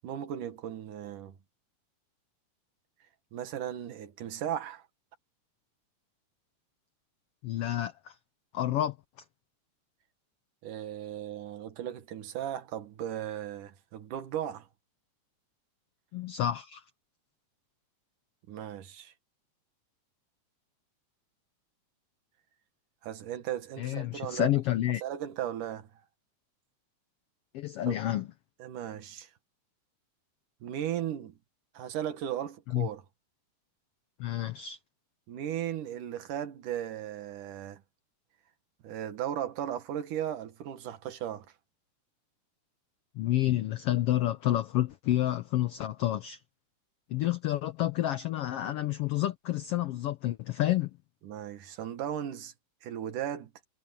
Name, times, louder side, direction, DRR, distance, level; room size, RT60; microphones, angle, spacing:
voice 1, 0.0-1.4 3.3-4.9 10.6-14.7 18.5-19.1 23.0-24.6 25.0-25.9 27.9-28.0 28.6-29.3 30.6-31.4 31.7-33.0 35.3-37.8 38.8-41.5 51.2-52.5 52.8-53.5, right 10 dB, 85° right, 3.1 m, -36 dB
voice 2, 7.4-8.1 8.5-9.0 16.1-16.8 23.8-25.0 27.5-28.3 32.7-32.9 34.2-34.8 43.2-46.4 47.1-50.9, left 13 dB, 90° left, 1.3 m, -29 dB
omnidirectional pair, 3.6 m